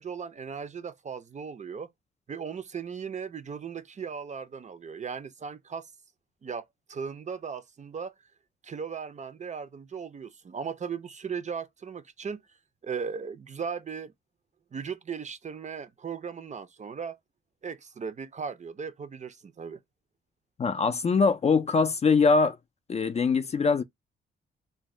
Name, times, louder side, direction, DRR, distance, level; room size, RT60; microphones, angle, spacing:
voice 1, 0.0-1.9 2.3-5.9 6.4-6.6 6.9-8.1 8.6-12.4 12.8-14.1 14.7-17.2 17.6-19.8, right 6 dB, 35° right, 0.5 m, -37 dB
voice 2, 20.6-22.6 22.9-23.8, left 4 dB, 30° left, 0.3 m, -23 dB
2.6 x 2.1 x 3.1 m
cardioid pair, 70°, 21 cm